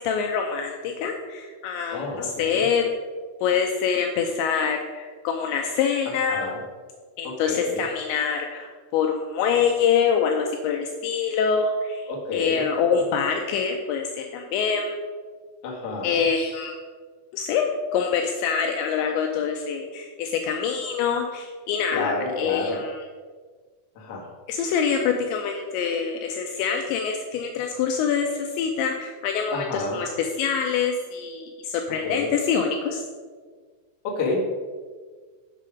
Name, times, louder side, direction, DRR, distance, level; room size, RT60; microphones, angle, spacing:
voice 1, 0.0-2.8 3.4-6.5 7.2-15.0 16.0-16.8 17.3-17.7 17.9-23.0 24.5-33.0, left 6 dB, 80° left, 3 dB, 2.7 m, -25 dB
voice 2, 1.9-2.6 6.3-6.6 7.2-7.8 12.1-13.0 15.6-16.2 21.9-22.8 23.9-24.2 29.5-30.0 32.0-32.3 34.0-34.5, left 3 dB, 60° left, -3 dB, 1.6 m, -29 dB
9.1 x 6.6 x 5.0 m, 1.5 s
omnidirectional pair, 5.7 m